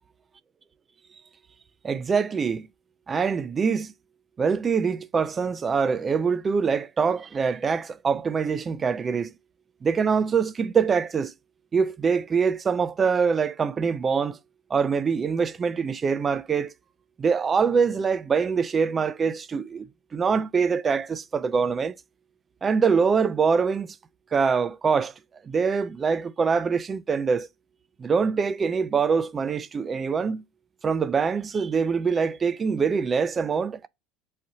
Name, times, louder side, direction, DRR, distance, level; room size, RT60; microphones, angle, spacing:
voice 1, 1.8-2.7 3.1-3.9 4.4-9.3 9.8-11.3 11.7-14.4 14.7-16.7 17.2-19.9 20.1-21.9 22.6-24.0 24.3-25.1 25.4-27.5 28.0-30.4 30.8-33.9, right 5 dB, 30° right, 0.4 m, -24 dB
4.1 x 2.6 x 3.9 m
figure-of-eight pair, 70°, 0 cm